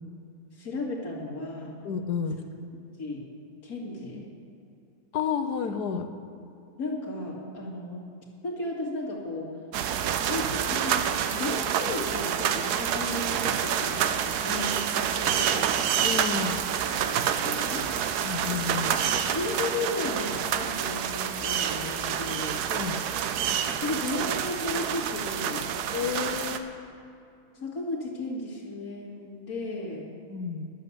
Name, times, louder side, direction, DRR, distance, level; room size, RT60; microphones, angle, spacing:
voice 1, 0.5-1.7 3.0-3.2 3.6-4.3 6.8-8.0 8.4-9.5 10.2-11.0 11.3-15.7 17.1-18.2 19.1-22.6 23.6-25.7 27.5-30.1, left 2 dB, 70° left, -4 dB, 2.6 m, -34 dB
voice 2, 1.8-2.4 5.1-6.1 16.0-16.6 18.2-19.0 22.7-23.0 25.9-26.9 30.3-30.7, left 6 dB, 90° left, 8 dB, 1.4 m, -31 dB
sound 1, 9.7-26.6, right 9 dB, 85° right, 1.2 m, -28 dB
sound 2, 11.8-25.8, right 2 dB, 65° right, 1.6 m, -52 dB
11.5 x 8.2 x 6.9 m, 2.6 s
omnidirectional pair, 1.6 m